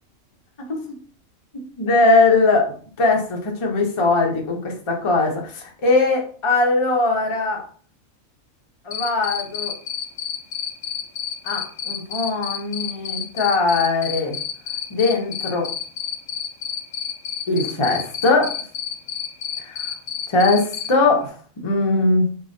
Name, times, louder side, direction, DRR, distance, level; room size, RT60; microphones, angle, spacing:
voice 1, 1.8-7.6 8.8-9.7 11.4-14.4 14.9-15.7 17.5-18.6 19.6-19.9 20.3-22.3, left 3 dB, 30° left, 1 dB, 0.7 m, -20 dB
Cricket, 8.9-20.9, left 9 dB, 75° left, 1.0 m, -29 dB
4.0 x 3.8 x 2.6 m, 0.43 s
omnidirectional pair, 1.4 m